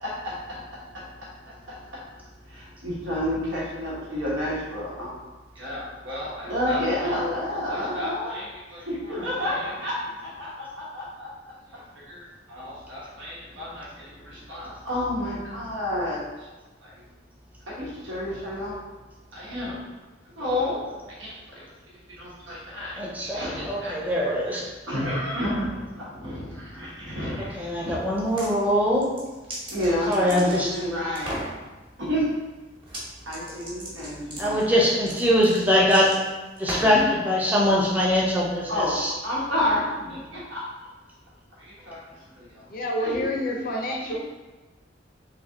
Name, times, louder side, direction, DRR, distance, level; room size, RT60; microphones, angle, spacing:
voice 1, 0.0-5.1 5.5-11.3 11.7-16.5 16.8-17.0 17.8-18.8 19.3-19.8 20.4-20.8 21.1-21.3 22.1-28.1 29.7-31.5 32.0-32.5 33.2-34.8 36.7-37.1 38.7-40.7 41.5-42.7 43.0-43.3 44.1-44.2, left 1 dB, 90° right, -6 dB, 1.3 m, -31 dB
voice 2, 22.9-24.6 27.4-29.1 30.1-30.7 34.4-36.1 36.6-39.1, equal, 10° right, -4 dB, 0.7 m, -22 dB
sound 1, 28.1-28.5 29.0-30.8 31.1-31.5 32.8-33.0 33.3-37.0, right 1 dB, 25° right, 1.1 m, -36 dB
voice 3, 42.7-44.2, left 1 dB, 50° left, 1 dB, 0.5 m, -28 dB
3.4 x 3.2 x 3.7 m, 1.2 s
head